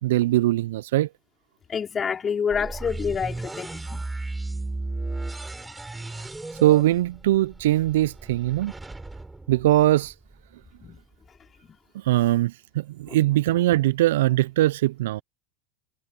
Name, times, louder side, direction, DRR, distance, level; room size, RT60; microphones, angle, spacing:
voice 1, 0.0-1.1 6.5-8.7 9.5-10.1 11.9-15.2, right 15 dB, 70° right, 0.9 m, -21 dB
voice 2, 1.7-4.0 10.8-11.0 13.1-13.2, left 6 dB, 25° left, 4.5 m, -28 dB
sound 1, 2.5-10.4, right 2 dB, 10° right, 5.7 m, -35 dB
hypercardioid pair, 85°, 0 cm